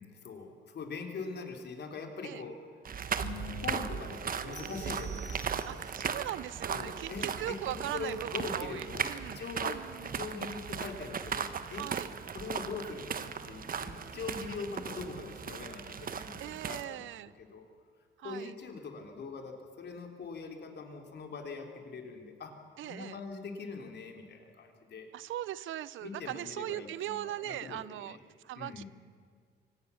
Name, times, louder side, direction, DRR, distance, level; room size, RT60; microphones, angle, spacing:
voice 1, 0.0-2.6 3.6-5.7 6.7-11.9 12.3-17.1 17.4-17.6 18.2-22.5 22.8-25.1 26.0-28.2 28.5-28.9, left 4 dB, 60° left, 3 dB, 3.7 m, -42 dB
sound 1, 2.9-16.8, right 6 dB, 45° right, 1.3 m, -37 dB
sound 2, 3.2-5.8, left 5 dB, 85° left, 5.2 m, -48 dB
sound 3, 4.5-6.1, right 4 dB, 20° left, 5.0 m, -52 dB
voice 2, 5.7-9.4 9.6-10.1 11.7-12.1 16.4-17.3 18.2-18.5 22.8-23.2 25.1-28.2 28.4-28.8, right 13 dB, 80° right, 19 dB, 0.7 m, -40 dB
24.5 x 18.5 x 7.1 m, 2.1 s
cardioid pair, 90°, 20 cm